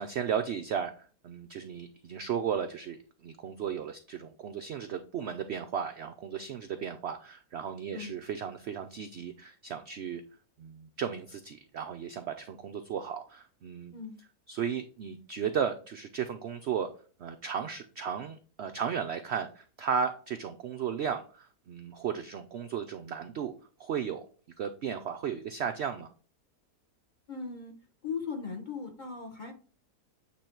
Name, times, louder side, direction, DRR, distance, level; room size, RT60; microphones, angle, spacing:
voice 1, 0.0-10.2 10.6-13.9 14.5-16.9 17.2-23.5 23.8-24.3 24.6-26.1, right 7 dB, 75° right, 8 dB, 0.6 m, -35 dB
voice 2, 27.3-27.7 28.0-29.5, left 5 dB, 30° left, 3 dB, 1.1 m, -38 dB
8.5 x 3.1 x 4.4 m, 0.40 s
omnidirectional pair, 1.7 m